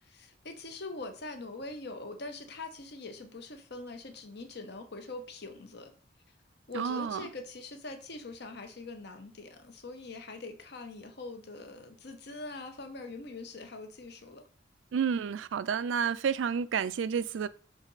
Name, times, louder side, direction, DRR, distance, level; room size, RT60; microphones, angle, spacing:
voice 1, 0.0-5.9 6.7-14.4, left 2 dB, 60° left, 1.1 m, -43 dB
voice 2, 6.7-7.3 14.9-17.5, right 7 dB, 80° right, 0.4 m, -30 dB
6.1 x 4.1 x 3.9 m
head